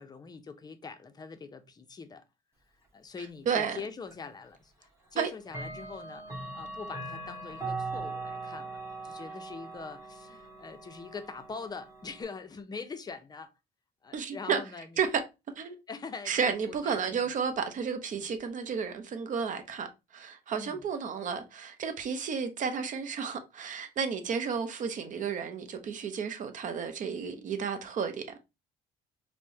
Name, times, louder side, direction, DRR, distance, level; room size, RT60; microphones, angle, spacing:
voice 1, 0.0-2.2 2.9-13.5 14.0-14.9 15.9-17.3 18.2-18.3 20.6-20.8, left 5 dB, 25° left, 0.5 m, -43 dB
voice 2, 3.5-3.8 5.2-5.3 14.1-14.6 15.0-15.2 15.6-15.8 16.3-28.4, right 6 dB, 50° right, 0.7 m, -32 dB
Clock, 4.1-4.2 5.5-12.2, right 3 dB, 15° right, 1.1 m, -40 dB
4.4 x 2.1 x 2.7 m
cardioid pair, 110°, 17 cm